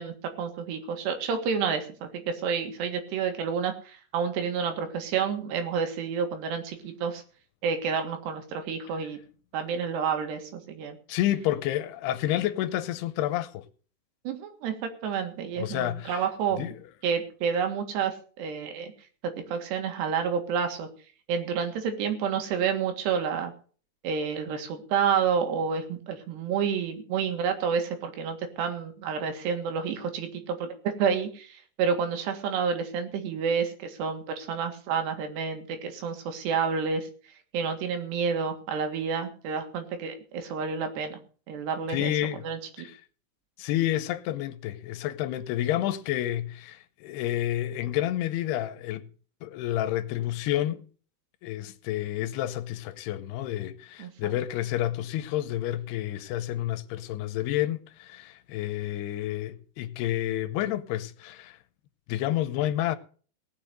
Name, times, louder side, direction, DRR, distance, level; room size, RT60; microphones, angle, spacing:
voice 1, 0.0-7.2 7.6-9.2 9.5-11.0 14.3-16.7 17.0-18.9 19.2-20.9 21.3-23.5 24.0-37.1 37.5-41.2 41.5-42.1 42.4-42.6 54.0-54.4, right 6 dB, 90° right, 4.0 m, -29 dB
voice 2, 11.1-13.6 15.6-16.2 16.6-16.7 41.9-42.4 42.8-43.0 43.6-49.1 49.4-50.9 51.4-61.6 62.1-63.0, left 13 dB, 80° left, 2.8 m, -29 dB
18.0 x 6.9 x 6.7 m
omnidirectional pair, 4.7 m